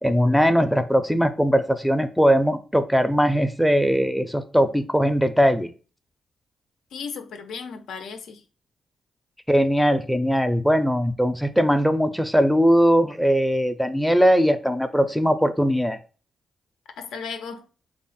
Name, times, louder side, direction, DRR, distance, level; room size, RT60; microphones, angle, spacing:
voice 1, 0.0-5.7 9.5-16.0, equal, ahead, 0.4 m, -20 dB
voice 2, 6.9-8.4 17.0-17.6, left 5 dB, 85° left, 0.4 m, -35 dB
3.4 x 2.0 x 3.9 m
cardioid pair, 70°, 0 cm